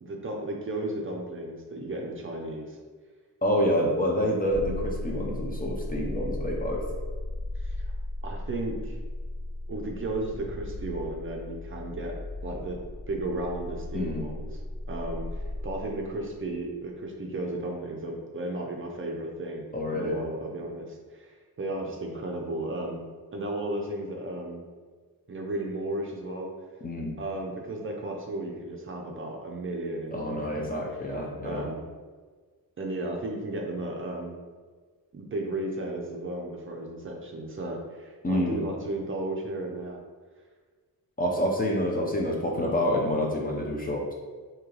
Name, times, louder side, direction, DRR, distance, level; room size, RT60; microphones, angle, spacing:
voice 1, 0.0-2.8 7.6-7.9 8.2-9.0 9.7-12.1 12.4-12.8 13.1-14.5 14.9-23.0 23.3-24.6 25.3-26.5 27.2-30.6 31.4-31.8 32.8-34.4 35.1-40.0, right 2 dB, 35° right, 0 dB, 0.5 m, -34 dB
voice 2, 3.4-6.9 13.9-14.3 19.7-20.2 26.8-27.2 30.1-31.7 38.2-38.6 41.2-44.1, equal, 25° left, -2 dB, 0.4 m, -27 dB
sound 1, 4.5-16.6, left 1 dB, ahead, 1.5 m, -36 dB
3.1 x 2.8 x 3.7 m, 1.5 s
wide cardioid pair, 155°, 37 cm